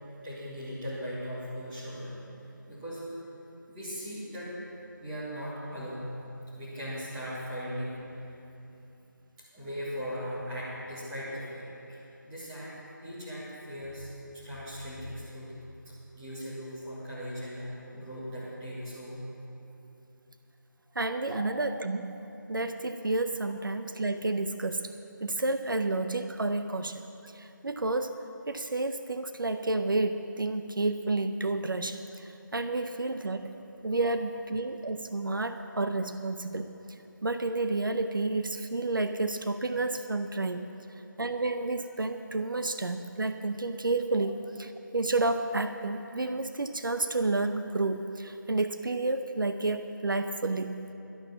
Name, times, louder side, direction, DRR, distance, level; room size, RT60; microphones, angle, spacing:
voice 1, 0.2-2.1 2.7-3.0 3.6-4.6 5.0-6.1 6.6-8.4 9.5-12.7 13.0-19.2 23.4-23.5, equal, 10° right, -10 dB, 2.8 m, -39 dB
voice 2, 21.0-22.2 22.5-24.9 25.2-33.5 33.8-36.7 37.2-40.6 41.2-50.9, right 2 dB, 80° right, 9 dB, 0.7 m, -30 dB
12.0 x 11.5 x 5.9 m, 2.9 s
figure-of-eight pair, 165°, 11 cm